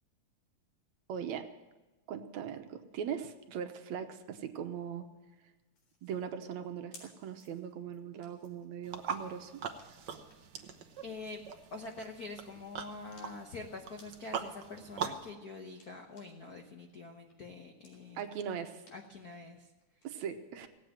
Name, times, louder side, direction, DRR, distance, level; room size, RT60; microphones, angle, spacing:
voice 1, 1.1-1.5 2.1-5.1 6.0-9.5 18.2-18.8 20.0-20.7, right 8 dB, 70° right, 7 dB, 2.1 m, -40 dB
sound 1, 5.8-16.6 16.9-20.1, left 3 dB, 90° left, 5.6 m, -63 dB
sound 2, 8.8-15.3, right 7 dB, 90° right, 0.9 m, -42 dB
voice 2, 11.0-11.4 11.7-18.2 18.9-19.7, left 3 dB, 65° left, 3 dB, 0.9 m, -45 dB
17.5 x 8.4 x 9.0 m, 1.2 s
omnidirectional pair, 3.5 m